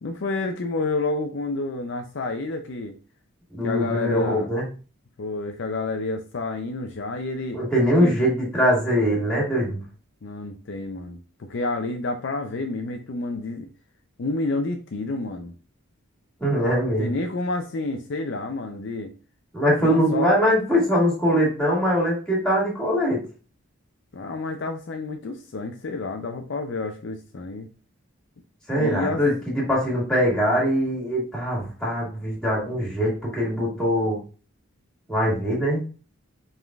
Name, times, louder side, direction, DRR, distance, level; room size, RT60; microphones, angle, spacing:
voice 1, 0.0-3.0 3.6-4.5 5.2-7.6 8.0-8.3 10.2-13.7 14.2-15.5 17.0-19.1 19.8-20.3 24.1-27.7 28.8-29.2, left 3 dB, 55° left, 0.4 m, -29 dB
voice 2, 3.5-4.6 7.5-9.8 16.4-17.1 19.5-23.2 28.7-34.2 35.1-35.8, equal, 5° left, 1.8 m, -22 dB
5.1 x 3.6 x 2.3 m
head